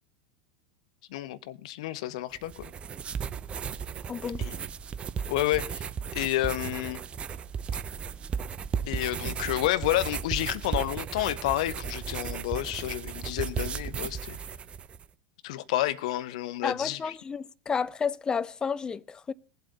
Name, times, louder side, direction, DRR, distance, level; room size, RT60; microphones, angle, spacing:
voice 1, 1.1-2.7 4.4-4.5 5.3-7.0 8.9-14.4 15.4-17.1, left 15 dB, 60° left, 0.8 m, -30 dB
sound 1, 2.3-15.0, right 7 dB, 30° right, 0.7 m, -35 dB
voice 2, 4.1-4.4 16.6-19.3, left 6 dB, 20° left, 0.6 m, -31 dB
19.5 x 8.0 x 4.0 m
figure-of-eight pair, 80°, 4 cm